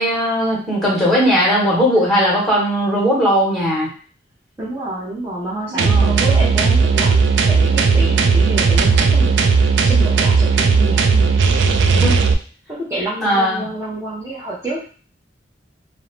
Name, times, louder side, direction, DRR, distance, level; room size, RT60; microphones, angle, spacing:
voice 1, 0.0-3.9 5.7-6.1 11.9-12.1 13.2-13.7, equal, ahead, -6 dB, 1.1 m, -18 dB
voice 2, 4.6-11.5 12.7-14.8, right 1 dB, 15° right, -9 dB, 0.7 m, -28 dB
sound 1, 5.8-12.3, right 4 dB, 70° right, 0.3 m, -15 dB
2.6 x 2.0 x 3.0 m, 0.39 s
head